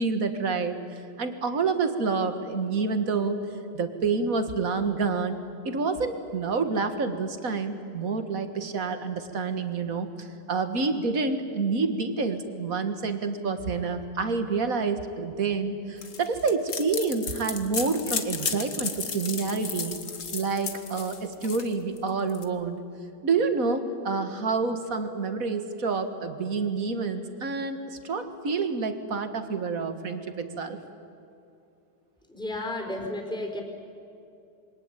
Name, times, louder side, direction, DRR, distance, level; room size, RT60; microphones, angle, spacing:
voice 1, 0.0-3.4 3.7-5.4 5.6-20.0 20.3-22.8 23.2-30.8, right 4 dB, 40° right, 8 dB, 2.0 m, -28 dB
sound 1, 16.0-22.4, left 6 dB, 40° left, 1.6 m, -34 dB
voice 2, 32.3-33.6, left 1 dB, ahead, 3 dB, 4.0 m, -32 dB
27.5 x 23.0 x 9.2 m, 2.6 s
omnidirectional pair, 2.3 m